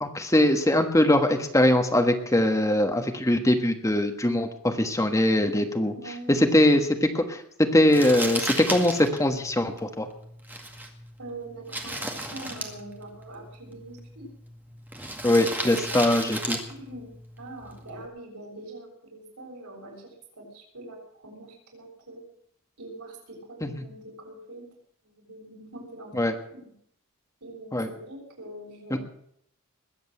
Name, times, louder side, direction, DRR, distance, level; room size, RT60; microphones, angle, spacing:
voice 1, 0.0-5.9 6.3-10.1 15.2-16.6 23.6-23.8 26.2-26.3 27.7-27.9 28.9-29.0, left 1 dB, 15° left, 5 dB, 1.4 m, -22 dB
voice 2, 5.9-6.6 11.2-14.3 16.7-17.1 17.4-22.2 22.8-24.7 25.0-26.1 26.5-26.7 27.4-29.0, right 2 dB, 90° right, -1 dB, 7.0 m, -43 dB
Crumpling crinkling, 7.9-18.1, right 1 dB, 10° right, 2.0 m, -36 dB
21.0 x 8.0 x 7.8 m, 0.70 s
head